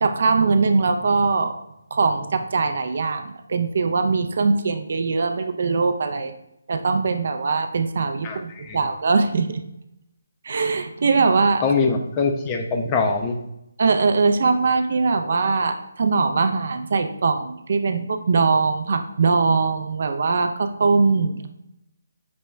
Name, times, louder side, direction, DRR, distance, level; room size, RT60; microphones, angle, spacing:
voice 1, 0.0-1.5 1.9-6.3 6.7-9.6 10.4-11.6 13.8-21.5, right 4 dB, 55° right, 7 dB, 0.4 m, -21 dB
voice 2, 8.2-8.8 11.6-13.4, left 4 dB, 20° left, 4 dB, 0.3 m, -23 dB
5.1 x 2.2 x 3.1 m, 0.83 s
hypercardioid pair, 165°, 0 cm